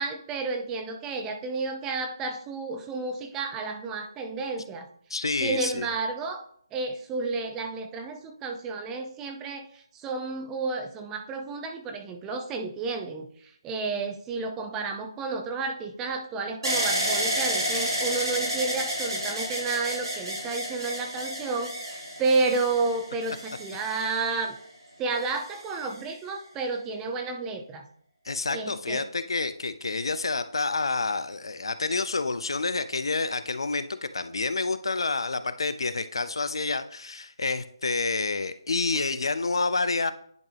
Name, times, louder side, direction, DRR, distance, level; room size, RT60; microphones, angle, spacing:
voice 1, 0.0-4.9 5.4-6.4 6.7-24.6 25.0-27.9 28.5-29.0, right 3 dB, 10° right, 5 dB, 0.5 m, -31 dB
voice 2, 5.1-5.9 28.2-40.1, left 3 dB, 75° left, 12 dB, 0.5 m, -28 dB
sound 1, 16.6-24.6 25.4-26.0, equal, 85° right, 3.1 m, -31 dB
10.5 x 3.5 x 3.4 m, 0.63 s
figure-of-eight pair, 160°, 3 cm